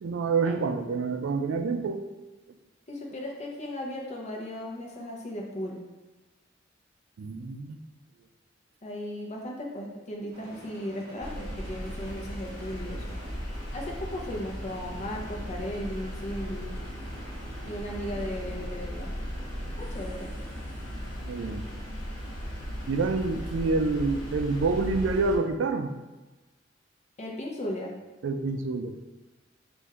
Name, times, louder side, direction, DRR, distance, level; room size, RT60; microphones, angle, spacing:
voice 1, 0.0-2.0 7.2-7.8 21.2-21.7 22.9-25.9 28.2-29.0, right 3 dB, 85° right, 7 dB, 0.4 m, -27 dB
voice 2, 2.9-5.8 8.8-13.2 13.7-16.7 17.6-19.2 19.8-20.4 27.2-27.9, left 1 dB, 40° left, -1 dB, 0.7 m, -36 dB
sound 1, 10.3-25.1, right 1 dB, 35° right, 1.5 m, -48 dB
sound 2, 11.2-25.4, equal, 85° left, 1.1 m, -37 dB
3.6 x 2.6 x 4.2 m, 1.2 s
head